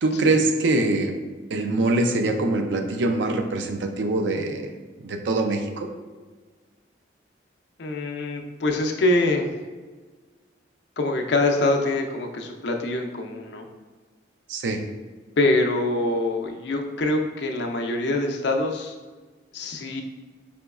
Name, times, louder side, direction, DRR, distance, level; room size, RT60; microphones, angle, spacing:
voice 1, 0.0-1.2 1.5-4.7 5.0-5.9 14.5-14.8, right 2 dB, 80° right, 6 dB, 0.4 m, -23 dB
voice 2, 7.8-9.5 11.0-13.6 15.4-18.9 19.5-20.0, left 2 dB, 70° left, 3 dB, 0.5 m, -24 dB
4.9 x 3.0 x 2.3 m, 1.3 s
head